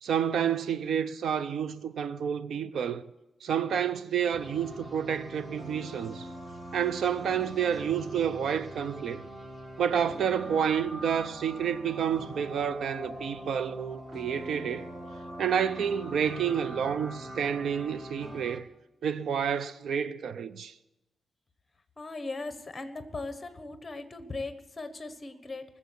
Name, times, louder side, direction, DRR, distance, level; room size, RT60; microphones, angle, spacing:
voice 1, 0.0-3.0 3.4-6.3 6.7-9.2 9.8-14.9 15.4-18.7 19.0-20.7, right 8 dB, 70° right, 0.5 m, -29 dB
sound 1, 4.3-18.6, right 1 dB, 20° right, 1.3 m, -43 dB
voice 2, 22.0-25.6, left 3 dB, 20° left, 1.1 m, -38 dB
19.5 x 7.3 x 8.4 m
wide cardioid pair, 170°, 0 cm